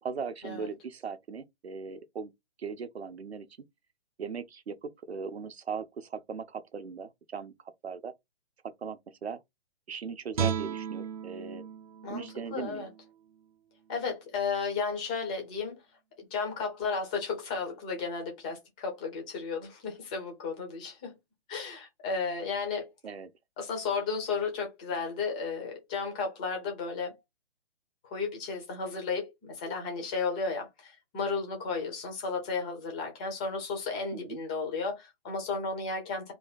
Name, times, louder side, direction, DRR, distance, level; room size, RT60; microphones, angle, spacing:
voice 1, 0.0-2.3 2.6-3.5 4.2-7.5 7.8-8.1 8.6-9.4 9.9-11.6 12.1-12.9 23.0-23.3 34.1-34.4, right 5 dB, 80° right, 0.7 m, -38 dB
Guitar, 10.3-13.5 13.9-14.1, right 7 dB, 35° right, 0.6 m, -35 dB
voice 2, 12.0-12.9 13.9-15.8 16.2-21.1 21.5-22.9 23.6-27.2 28.0-36.3, left 4 dB, 10° left, 0.3 m, -33 dB
2.7 x 2.5 x 3.9 m
figure-of-eight pair, 125°, 32 cm